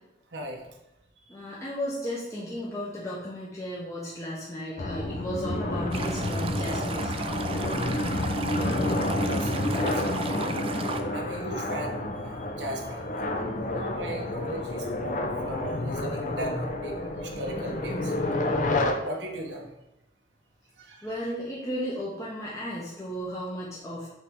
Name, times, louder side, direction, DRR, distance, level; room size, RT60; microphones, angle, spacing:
voice 1, 1.3-7.2 13.2-14.6 15.2-15.6 21.0-24.1, equal, 15° left, -6 dB, 0.9 m, -35 dB
sound 1, 4.8-18.9, left 1 dB, 45° left, 0.6 m, -29 dB
Stream, 5.9-11.0, right 4 dB, 30° right, 0.4 m, -36 dB
voice 2, 9.2-10.2 11.1-13.0 13.7-16.9 17.2-18.1 19.0-19.7 20.8-21.1, right 1 dB, 90° right, 0 dB, 1.0 m, -37 dB
6.4 x 4.3 x 3.7 m, 0.92 s
head